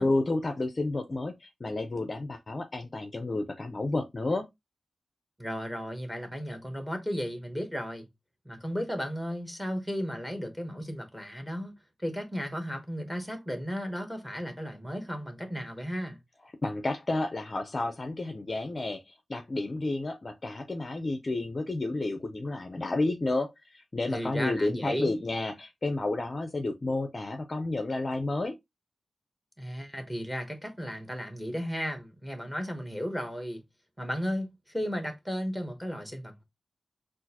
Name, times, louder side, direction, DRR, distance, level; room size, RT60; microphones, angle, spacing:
voice 1, 0.0-4.5 16.6-28.6, left 2 dB, 30° left, 0.5 m, -31 dB
voice 2, 5.4-8.1 8.4-11.7 12.0-16.2 24.1-25.1 29.6-33.6 34.0-36.4, equal, 5° right, 1.0 m, -34 dB
6.1 x 2.5 x 2.8 m
wide cardioid pair, 180°, 0 cm